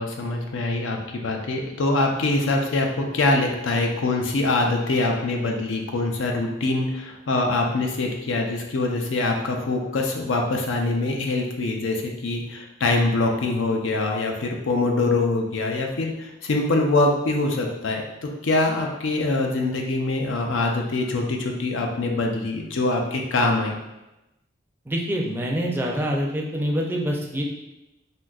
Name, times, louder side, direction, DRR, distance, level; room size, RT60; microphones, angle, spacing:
voice 1, 0.0-23.7, left 2 dB, 90° left, 2 dB, 0.5 m, -24 dB
voice 2, 24.9-27.4, equal, 10° right, -1 dB, 0.4 m, -25 dB
3.6 x 2.6 x 2.3 m, 0.96 s
head